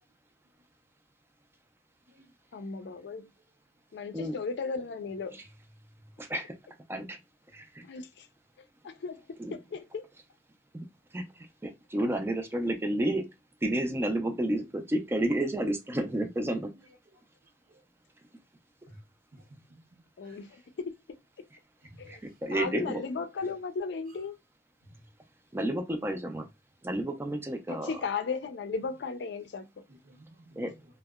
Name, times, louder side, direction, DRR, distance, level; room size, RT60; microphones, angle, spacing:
voice 1, 2.5-3.3 3.9-5.4 7.8-8.3 8.8-9.2 9.5-10.0 20.2-20.9 22.0-22.2 22.5-24.3 27.7-29.6, left 4 dB, 80° left, 0.4 m, -35 dB
voice 2, 6.2-6.5 6.9-7.2 7.5-7.8 9.4-9.5 10.7-10.8 11.1-13.3 13.6-16.7 22.1-23.0 25.5-26.5 26.8-27.9 30.6-30.7, right 1 dB, 15° right, 0.3 m, -31 dB
voice 3, 19.3-19.8 20.2-20.4 21.8-22.4 24.9-25.0 29.9-30.6, right 1 dB, 55° right, 0.6 m, -55 dB
2.7 x 2.1 x 2.2 m
head